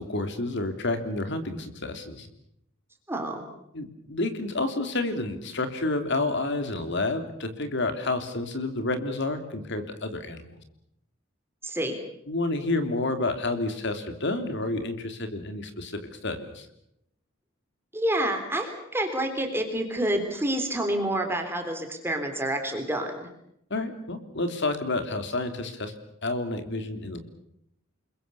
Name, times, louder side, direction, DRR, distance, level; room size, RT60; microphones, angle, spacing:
voice 1, 0.0-2.3 3.7-10.5 12.3-16.7 23.7-25.9 26.2-27.2, left 2 dB, 55° left, 8 dB, 3.2 m, -29 dB
voice 2, 3.1-3.4 11.6-12.0 17.9-23.3, right 1 dB, 10° right, 4 dB, 3.6 m, -28 dB
28.5 x 22.0 x 7.0 m, 0.77 s
head